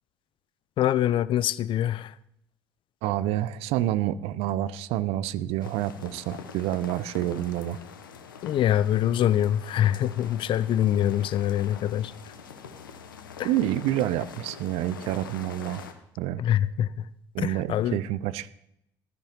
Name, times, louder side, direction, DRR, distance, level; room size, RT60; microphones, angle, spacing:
voice 1, 0.8-2.1 8.4-12.1 13.4-13.5 16.4-17.0 17.4-18.0, left 11 dB, 50° left, 0.5 m, -24 dB
voice 2, 3.0-7.8 13.4-15.8 16.2-16.4 17.3-18.6, right 13 dB, 65° right, 0.5 m, -28 dB
sound 1, 5.6-15.9, left 6 dB, 85° left, 0.9 m, -44 dB
14.5 x 13.5 x 3.0 m
hypercardioid pair, 60°, 11 cm